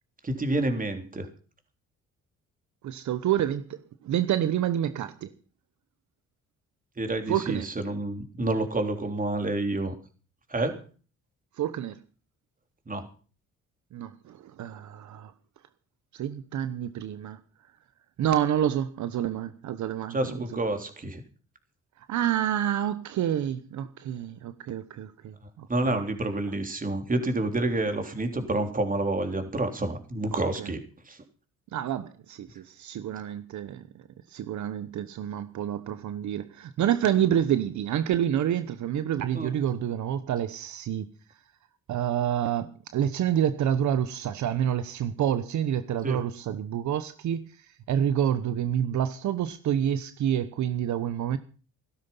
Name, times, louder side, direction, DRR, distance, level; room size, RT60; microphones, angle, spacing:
voice 1, 0.2-1.3 7.0-9.9 10.5-10.8 12.9-13.1 20.1-21.2 25.7-30.8 31.1-31.2 39.3-39.5 46.0-46.2, right 2 dB, 25° right, 3.6 m, -28 dB
voice 2, 2.8-5.3 7.3-7.6 11.6-12.0 13.9-15.3 16.1-17.4 18.2-20.5 22.1-26.0 30.3-30.7 31.7-33.9 34.3-41.0 41.9-47.5 47.9-51.4, right 10 dB, 70° right, 1.0 m, -28 dB
16.0 x 12.5 x 5.6 m
cardioid pair, 90°, 30 cm